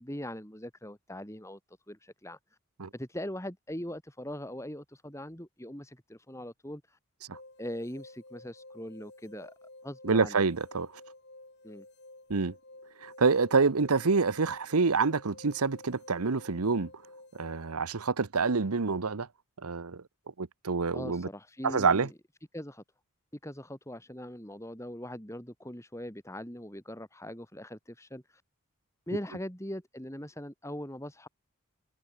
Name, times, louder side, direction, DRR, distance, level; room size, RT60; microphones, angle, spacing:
voice 1, 0.0-2.4 2.9-7.0 7.6-9.5 9.8-10.4 11.6-11.9 20.9-22.1 22.5-22.8 23.4-28.4 29.1-31.3, left 1 dB, 15° left, 2.9 m, -41 dB
sound 1, 7.3-17.7, left 2 dB, 50° left, 6.7 m, -52 dB
voice 2, 10.0-10.9 12.3-12.5 13.0-16.9 17.3-19.3 19.6-20.0 20.4-21.3 21.6-22.1, right 4 dB, 90° right, 0.9 m, -27 dB
head